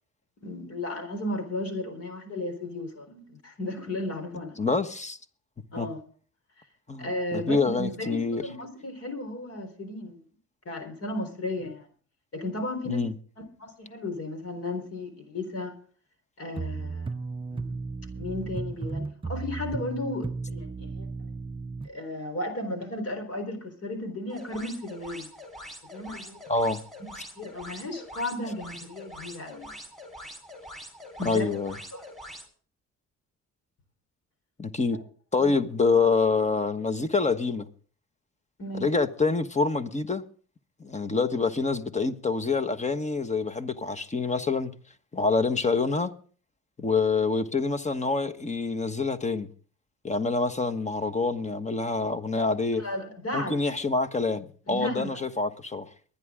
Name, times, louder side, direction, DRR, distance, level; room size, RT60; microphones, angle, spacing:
voice 1, 0.4-4.6 5.7-6.0 7.0-10.2 10.7-11.9 12.3-13.1 13.6-15.8 16.4-17.2 17.5-17.8 18.2-21.1 21.8-25.3 25.9-26.4 27.0-29.8 31.2-31.5 31.9-32.1 35.4-35.6 38.6-38.9 52.8-53.8 54.7-55.2, left 1 dB, 55° left, 3.9 m, -34 dB
voice 2, 4.6-5.2 5.8-5.9 6.9-8.5 12.9-13.1 26.5-26.8 31.2-31.7 34.6-35.0 35.3-37.7 38.8-40.2 40.8-44.7 45.1-46.1 46.8-49.5 50.0-52.8 53.3-55.9, left 4 dB, 25° left, 1.3 m, -26 dB
sound 1, 16.5-21.9, right 4 dB, 20° right, 0.5 m, -34 dB
sound 2, 24.3-32.5, equal, ahead, 3.8 m, -44 dB
23.5 x 10.0 x 3.7 m
cardioid pair, 90°, 30 cm